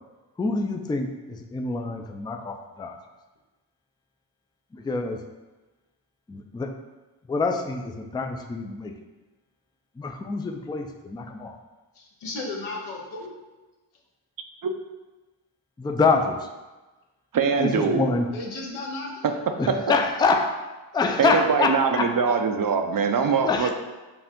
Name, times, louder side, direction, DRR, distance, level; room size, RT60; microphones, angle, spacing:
voice 1, 0.4-3.0 4.7-5.2 6.3-6.7 7.3-8.9 10.0-11.6 15.8-16.4 17.6-18.3 19.6-20.5 20.9-22.3 23.4-23.7, left 4 dB, 10° left, 4 dB, 0.3 m, -26 dB
voice 2, 12.0-13.3 18.3-19.4, left 2 dB, 85° left, -1 dB, 0.9 m, -34 dB
voice 3, 17.3-18.1 19.2-19.3 19.7-19.8 21.2-23.7, right 5 dB, 45° right, 6 dB, 0.5 m, -22 dB
4.9 x 2.5 x 3.6 m, 1.2 s
cardioid pair, 50°, 48 cm